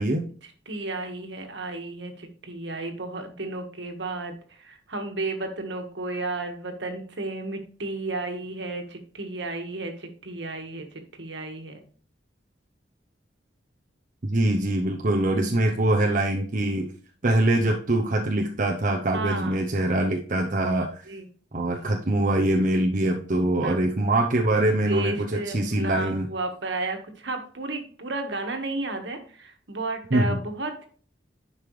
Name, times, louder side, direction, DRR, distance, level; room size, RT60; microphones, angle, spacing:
voice 1, 0.4-10.9 11.2-11.8 19.1-19.6 21.1-21.3 23.6-23.8 24.8-30.9, right 2 dB, 70° right, 5 dB, 1.6 m, -33 dB
voice 2, 14.2-16.9 17.2-21.0 21.5-26.3 30.1-30.4, right 1 dB, 45° right, 1 dB, 0.8 m, -23 dB
10.5 x 5.5 x 3.2 m, 0.43 s
head